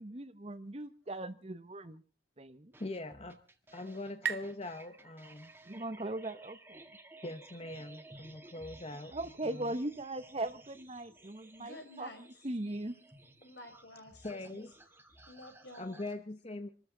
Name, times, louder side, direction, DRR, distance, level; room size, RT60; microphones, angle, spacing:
voice 1, 0.0-2.0 2.4-2.7 5.7-6.9 9.1-12.1 12.4-13.0, right 1 dB, 35° right, 12 dB, 1.1 m, -39 dB
sound 1, 2.7-16.1, right 2 dB, 10° right, 1.8 m, -56 dB
voice 2, 2.8-3.4 3.7-5.5 7.2-9.2 9.4-9.7 14.2-14.7 15.8-16.7, left 2 dB, 35° left, 8 dB, 1.0 m, -42 dB
sound 2, 2.8-6.2, right 7 dB, 65° right, 1.0 m, -43 dB
voice 3, 11.6-12.2 13.4-14.7 15.3-16.1, left 1 dB, 75° left, 5 dB, 4.5 m, -51 dB
26.0 x 13.5 x 4.0 m, 0.37 s
head